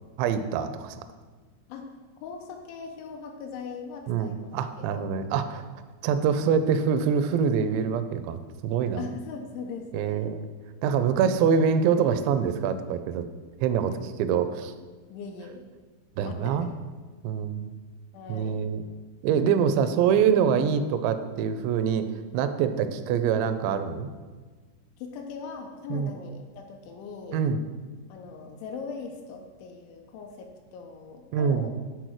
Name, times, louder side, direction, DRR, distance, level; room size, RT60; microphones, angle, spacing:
voice 1, 0.2-1.0 4.1-5.6 6.0-9.0 9.9-10.5 10.8-13.3 13.6-14.7 16.2-16.7 17.2-17.7 18.3-18.8 19.2-24.1 25.9-26.1 27.3-27.6 31.3-31.7, right 7 dB, 85° right, 9 dB, 2.5 m, -25 dB
voice 2, 2.2-5.3 9.0-10.4 15.1-15.6 16.2-16.8 18.1-18.6 25.0-27.4 28.1-31.7, left 5 dB, 85° left, 3 dB, 3.0 m, -40 dB
10.5 x 4.1 x 6.3 m, 1.4 s
omnidirectional pair, 5.6 m